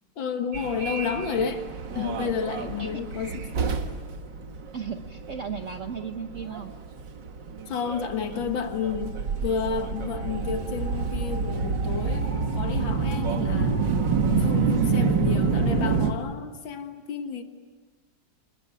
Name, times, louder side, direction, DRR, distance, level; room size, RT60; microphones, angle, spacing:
voice 1, 0.2-1.6 2.0-3.5 7.7-13.8 14.4-17.4, left 6 dB, 85° left, 6 dB, 2.3 m, -31 dB
Subway metro underground, 0.5-16.1, right 4 dB, 70° right, 2.2 m, -28 dB
voice 2, 4.7-6.7 15.3-15.8, right 6 dB, 50° right, 6 dB, 1.2 m, -36 dB
28.0 x 20.5 x 9.1 m, 1.3 s
omnidirectional pair, 2.0 m